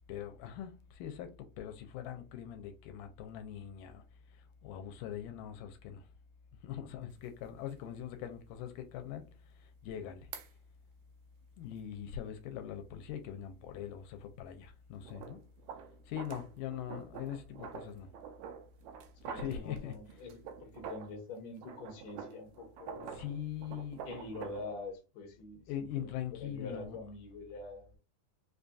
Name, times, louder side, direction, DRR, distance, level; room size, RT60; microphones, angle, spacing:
voice 1, 0.1-4.0 4.6-6.1 6.6-9.3 9.8-10.3 11.6-15.4 16.1-18.1 19.3-19.9 23.1-24.0 25.7-27.0, left 10 dB, 85° left, 2.1 m, -42 dB
sound 1, 7.1-7.2 7.7-7.8 10.3-10.5 15.0-21.2 21.5-24.7, right 7 dB, 75° right, 1.8 m, -47 dB
voice 2, 19.2-23.3 24.1-28.0, left 3 dB, 70° left, 1.9 m, -45 dB
5.0 x 2.6 x 2.3 m
omnidirectional pair, 3.7 m